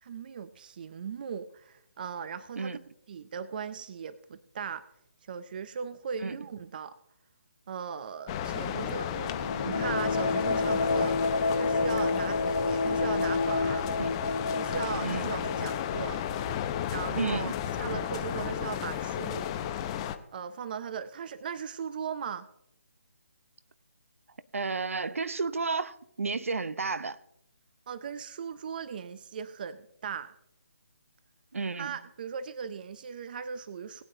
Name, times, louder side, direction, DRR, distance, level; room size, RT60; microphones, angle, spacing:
voice 1, 0.0-2.8 3.1-4.8 5.3-7.0 7.7-9.3 9.6-11.2 11.5-13.9 14.5-16.2 16.9-19.4 20.3-22.5 27.9-30.3 31.8-34.0, right 7 dB, 40° right, 0.5 m, -38 dB
sound 1, 8.3-20.2, left 10 dB, 20° left, 0.6 m, -33 dB
sound 2, 9.0-17.6, left 3 dB, 75° left, 1.3 m, -30 dB
voice 2, 15.0-15.4 17.1-17.5 24.5-27.2 31.5-32.0, right 4 dB, 70° right, 0.8 m, -32 dB
20.0 x 9.1 x 2.7 m
figure-of-eight pair, 150°, 8 cm